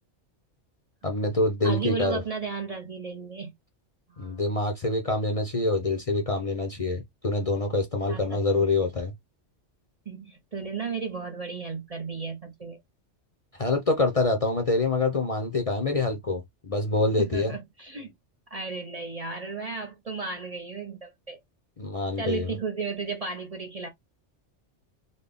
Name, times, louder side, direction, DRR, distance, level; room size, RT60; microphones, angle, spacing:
voice 1, 1.0-2.2 4.2-9.1 13.6-17.5 21.8-22.5, left 2 dB, 35° left, 0.6 m, -26 dB
voice 2, 1.6-3.5 4.1-4.4 8.1-8.7 10.1-12.8 17.2-18.1 18.5-21.4 22.2-23.9, right 4 dB, 40° right, 0.6 m, -34 dB
4.0 x 2.2 x 3.4 m
omnidirectional pair, 1.2 m